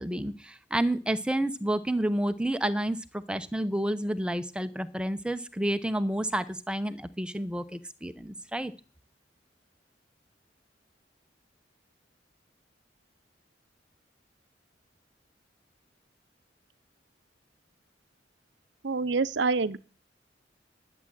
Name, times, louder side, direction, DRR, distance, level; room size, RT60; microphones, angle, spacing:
voice 1, 0.0-8.7, right 1 dB, 5° right, 0.8 m, -30 dB
voice 2, 18.8-19.8, right 4 dB, 75° right, 0.7 m, -26 dB
11.0 x 7.5 x 9.8 m
head